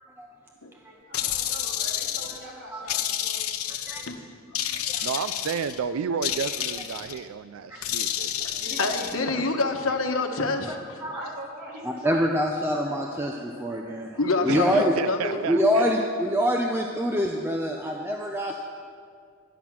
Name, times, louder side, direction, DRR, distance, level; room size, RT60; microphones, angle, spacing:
sound 1, 1.1-2.4 2.9-4.1 4.6-5.8 6.2-7.2 7.8-9.2, left 11 dB, 90° left, 0.8 m, -29 dB
voice 1, 1.1-3.4 7.7-7.8 8.5-9.4 9.9-10.2 11.1-12.5 12.7-13.0 13.3-13.5, right 1 dB, 45° right, -4 dB, 3.3 m, -42 dB
voice 2, 3.8-4.2 4.7-4.8 7.7-11.0 14.1-15.4, left 3 dB, 70° left, 4 dB, 1.1 m, -28 dB
voice 3, 5.0-8.5 14.5-16.1, right 6 dB, 75° right, 12 dB, 0.4 m, -32 dB
voice 4, 11.8-14.1 14.4-14.9 15.5-18.6, equal, 10° right, 1 dB, 0.6 m, -25 dB
13.0 x 10.0 x 6.0 m, 2.2 s
head